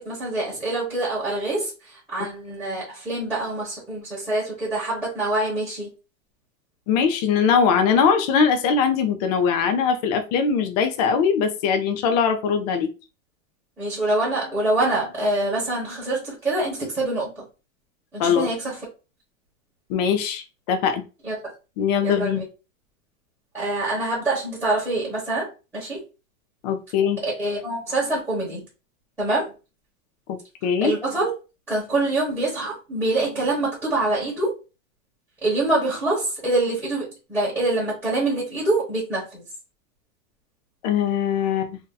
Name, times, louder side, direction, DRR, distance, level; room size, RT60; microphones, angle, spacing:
voice 1, 0.0-5.9 13.8-17.4 18.1-18.8 21.2-21.3 22.0-22.4 23.5-25.5 25.7-26.0 27.2-28.6 29.2-29.5 30.8-31.3 31.7-34.5 35.4-39.4, right 2 dB, 5° right, -10 dB, 1.1 m, -25 dB
voice 2, 6.9-12.9 18.2-18.5 19.9-21.0 21.8-22.4 26.6-27.2 30.3-30.9 40.8-41.8, left 6 dB, 35° left, 7 dB, 0.4 m, -21 dB
2.7 x 2.2 x 3.7 m, 0.31 s
supercardioid pair, 160°, 39 cm